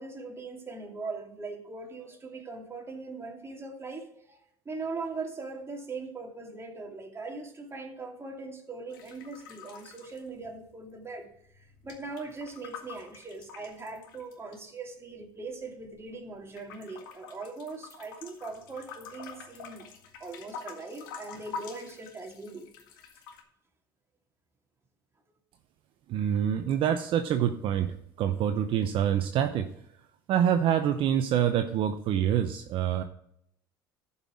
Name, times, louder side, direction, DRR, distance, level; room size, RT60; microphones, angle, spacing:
voice 1, 0.0-4.4 4.7-19.8 20.2-22.7, right 3 dB, 25° right, 2 dB, 2.3 m, -40 dB
sound 1, 8.9-10.9 11.2-14.6 15.2-16.2 16.5-23.4, left 6 dB, 80° left, 1.8 m, -46 dB
voice 2, 26.1-29.7 30.3-33.0, right 9 dB, 55° right, 8 dB, 0.7 m, -26 dB
12.0 x 5.7 x 4.8 m, 0.72 s
hypercardioid pair, 75°, 11 cm